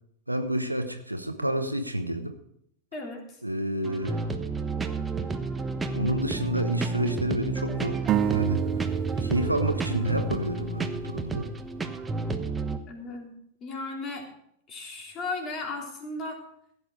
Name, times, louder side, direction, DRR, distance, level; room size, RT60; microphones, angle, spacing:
voice 1, 0.3-2.3 3.4-4.2 5.9-8.6 9.2-11.5, equal, 85° right, 7 dB, 1.2 m, -29 dB
voice 2, 2.9-3.2 12.9-13.3 13.6-14.2 14.7-16.4, left 3 dB, 30° left, 1 dB, 3.4 m, -35 dB
sound 1, 3.8-12.8, right 3 dB, 15° right, 1.0 m, -31 dB
sound 2, 8.1-11.7, right 11 dB, 30° right, 0.4 m, -30 dB
15.5 x 8.9 x 5.0 m, 0.71 s
figure-of-eight pair, 90°, 0 cm